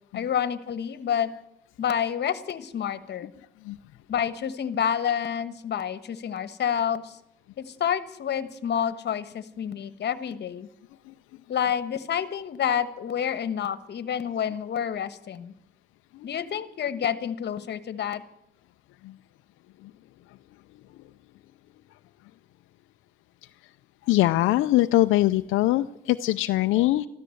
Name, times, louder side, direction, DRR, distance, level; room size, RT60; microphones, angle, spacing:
voice 1, 0.1-1.3 1.8-3.3 4.1-7.2 7.6-10.7 11.5-15.5 16.2-18.2, left 8 dB, 60° left, 14 dB, 1.2 m, -28 dB
voice 2, 24.1-27.1, left 16 dB, 90° left, 9 dB, 0.5 m, -22 dB
13.5 x 13.0 x 7.8 m, 0.81 s
cardioid pair, 90°, 20 cm